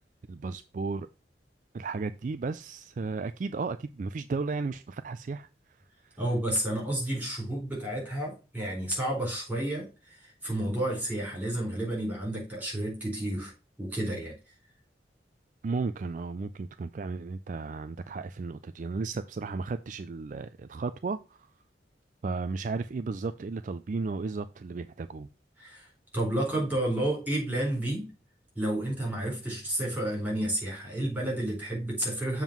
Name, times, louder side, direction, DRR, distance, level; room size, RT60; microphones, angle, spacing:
voice 1, 0.3-1.1 1.7-5.5 6.0-6.2 15.6-21.5 22.2-25.3, right 4 dB, 45° right, 0.3 m, -34 dB
voice 2, 6.2-13.5 13.8-14.3 25.6-28.1 28.6-32.4, right 1 dB, 10° right, 4.1 m, -31 dB
7.2 x 3.7 x 5.9 m
head